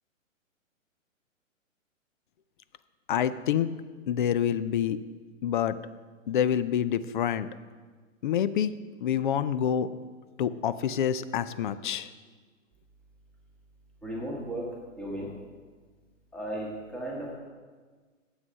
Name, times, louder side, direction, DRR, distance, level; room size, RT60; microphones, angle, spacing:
voice 1, 3.1-3.7 4.1-5.0 5.4-5.8 6.3-7.5 8.2-8.7 9.0-9.9 10.4-12.1, left 9 dB, 40° left, 15 dB, 0.4 m, -27 dB
voice 2, 14.0-14.7 14.9-15.3 16.3-17.3, right 1 dB, 5° left, -4 dB, 1.7 m, -35 dB
9.6 x 8.0 x 5.4 m, 1.4 s
hypercardioid pair, 135°, 40 cm